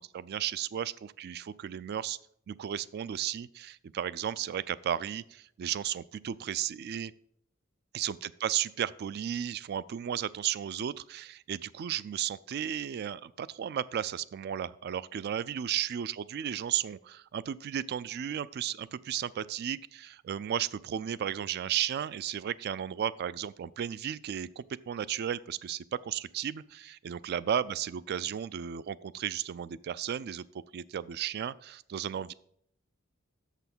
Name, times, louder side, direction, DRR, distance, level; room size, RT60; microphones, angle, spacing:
voice 1, 0.1-2.2 2.5-7.1 7.9-30.5 30.7-32.3, right 9 dB, 50° right, 19 dB, 0.3 m, -34 dB
6.9 x 5.7 x 6.0 m, 0.68 s
head